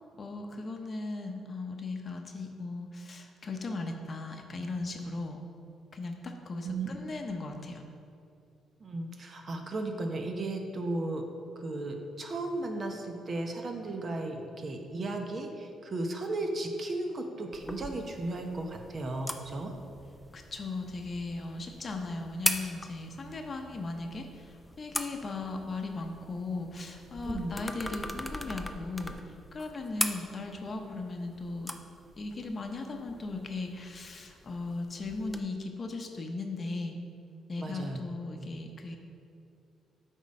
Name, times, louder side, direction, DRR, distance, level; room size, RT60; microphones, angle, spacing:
voice 1, 0.1-5.4 5.9-7.8 20.3-31.7 32.1-37.0 37.5-39.0, left 3 dB, 40° left, 3 dB, 0.8 m, -37 dB
voice 2, 6.6-7.0 8.8-11.3 11.6-19.7 22.1-22.2 27.3-27.5 37.6-38.0 38.4-38.5, right 2 dB, 45° right, 4 dB, 0.8 m, -35 dB
sound 1, 17.5-35.4, left 1 dB, 5° left, 0.5 m, -40 dB
8.2 x 3.7 x 5.3 m, 2.5 s
cardioid pair, 90°, 0 cm